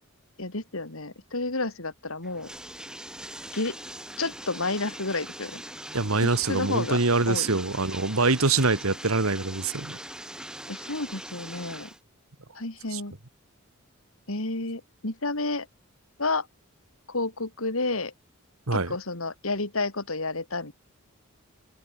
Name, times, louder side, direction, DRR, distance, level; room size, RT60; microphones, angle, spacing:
voice 1, 0.4-2.5 3.5-3.8 4.2-5.6 6.2-7.0 7.3-7.6 10.7-11.9 12.5-13.1 14.3-15.7 16.2-16.5 17.1-18.1 18.7-20.7, left 3 dB, 75° left, 3.1 m, -30 dB
Bathtub (filling or washing), 2.2-12.0, right 1 dB, 5° right, 5.8 m, -41 dB
voice 2, 5.9-10.0 12.9-13.0 18.7-19.0, right 3 dB, 80° right, 1.9 m, -24 dB
open air
head